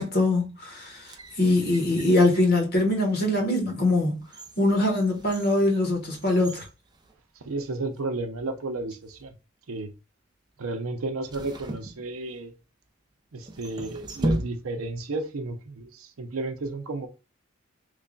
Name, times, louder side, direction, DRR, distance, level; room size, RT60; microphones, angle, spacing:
voice 1, 0.0-4.2 4.6-6.7, left 2 dB, 50° left, 1.0 m, -23 dB
sound 1, 0.9-2.6 3.2-3.4 3.9-7.7 8.0-8.1 8.9-9.3 11.3-12.6 13.4-15.0 15.2-15.3, right 1 dB, 20° right, 0.5 m, -36 dB
voice 2, 7.4-9.3 9.7-9.9 10.6-12.5 13.3-17.1, right 2 dB, 90° right, 0.6 m, -32 dB
3.2 x 2.3 x 3.8 m
head